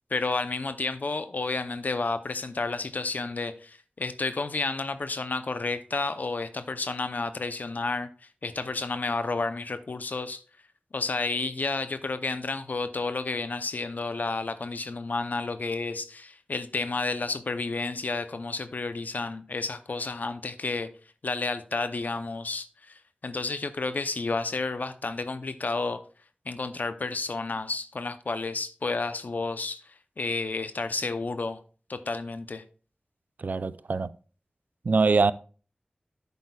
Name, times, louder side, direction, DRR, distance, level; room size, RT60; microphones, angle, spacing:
voice 1, 0.1-10.4 10.9-20.9 21.2-26.0 26.5-31.6 31.9-32.6, left 3 dB, 70° left, 0.6 m, -31 dB
voice 2, 33.4-34.1 34.9-35.3, right 4 dB, 70° right, 0.4 m, -23 dB
11.0 x 8.2 x 2.3 m
wide cardioid pair, 75°, 3 cm